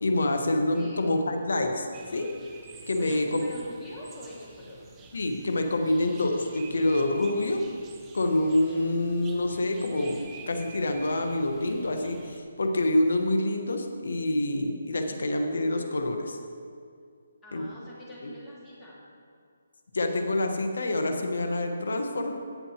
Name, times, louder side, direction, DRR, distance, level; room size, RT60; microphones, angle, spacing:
voice 1, 0.0-2.3 2.9-3.4 5.1-7.7 8.1-10.2 10.5-16.4 17.5-17.6 18.2-18.3 19.9-22.3, left 1 dB, 80° left, 4 dB, 1.3 m, -27 dB
sound 1, 1.9-12.4, right 4 dB, 10° right, 0.7 m, -49 dB
voice 2, 3.0-4.8 17.4-19.0, left 1 dB, 10° left, -8 dB, 2.2 m, -44 dB
17.5 x 7.0 x 3.0 m, 2.3 s
hypercardioid pair, 165°, 0 cm